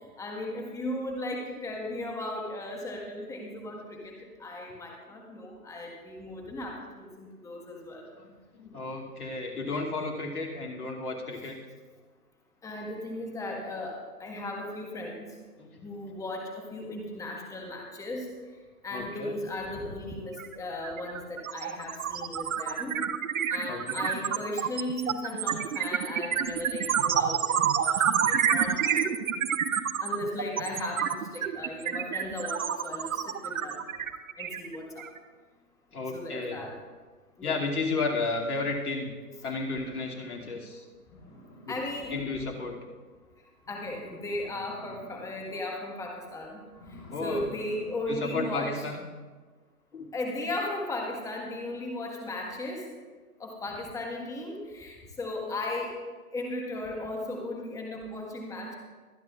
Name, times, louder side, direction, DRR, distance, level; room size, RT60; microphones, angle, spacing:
voice 1, 0.2-8.0 12.6-15.3 15.8-18.3 18.8-23.0 23.5-29.4 30.0-33.8 34.4-35.0 36.1-36.7 37.4-37.6 41.7-42.1 43.7-46.6 46.9-48.8 50.1-52.8 53.4-56.0 56.3-58.7, left 1 dB, 5° left, 0 dB, 1.5 m, -36 dB
voice 2, 3.5-4.0 8.2-11.6 15.6-15.9 17.1-17.2 18.9-19.3 23.7-24.0 35.9-36.7 37.4-39.1 39.4-40.8 41.7-41.8 42.1-42.8 47.1-47.5 48.1-49.0 49.9-50.1, left 3 dB, 70° left, -1 dB, 2.7 m, -33 dB
sound 1, 20.4-20.5 20.8-35.2, right 8 dB, 60° right, 0.9 m, -28 dB
sound 2, 41.0-42.4 42.8-42.9 43.3-43.4 43.6-45.5 45.8-46.2 46.7-48.7, equal, 25° left, 4.6 m, -50 dB
23.5 x 9.9 x 2.4 m, 1.4 s
hypercardioid pair, 140°, 46 cm